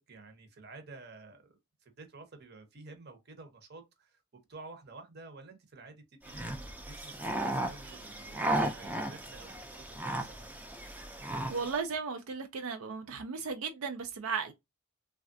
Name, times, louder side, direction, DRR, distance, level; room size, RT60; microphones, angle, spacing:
voice 1, 0.1-6.4 6.8-10.5, right 3 dB, 50° right, 0.8 m, -51 dB
sound 1, 6.2-11.8, right 1 dB, 10° right, 0.3 m, -35 dB
voice 2, 11.5-14.5, right 5 dB, 85° right, 0.5 m, -35 dB
3.3 x 2.3 x 2.6 m
head